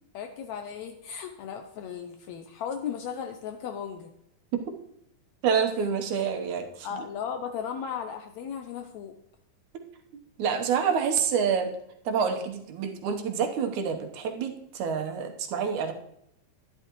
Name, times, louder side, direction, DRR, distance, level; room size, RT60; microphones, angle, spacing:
voice 1, 0.1-4.1 6.8-9.1, left 7 dB, 80° left, 6 dB, 1.6 m, -36 dB
voice 2, 5.4-7.0 10.4-11.7 12.1-15.9, right 6 dB, 70° right, 4 dB, 2.3 m, -27 dB
11.5 x 11.5 x 3.0 m, 0.77 s
omnidirectional pair, 3.9 m